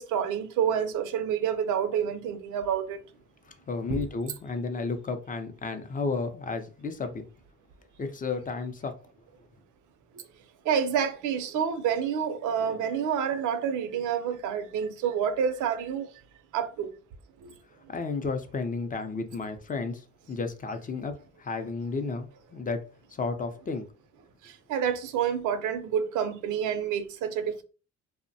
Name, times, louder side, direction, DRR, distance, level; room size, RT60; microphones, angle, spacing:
voice 1, 0.0-3.0 3.9-4.0 10.7-16.1 16.5-16.9 17.4-17.5 24.4-27.6, right 8 dB, 80° right, 0.5 m, -28 dB
voice 2, 3.4-7.2 8.0-9.0 17.9-23.9, left 4 dB, 30° left, 0.4 m, -33 dB
2.6 x 2.1 x 2.6 m
cardioid pair, 90°, 30 cm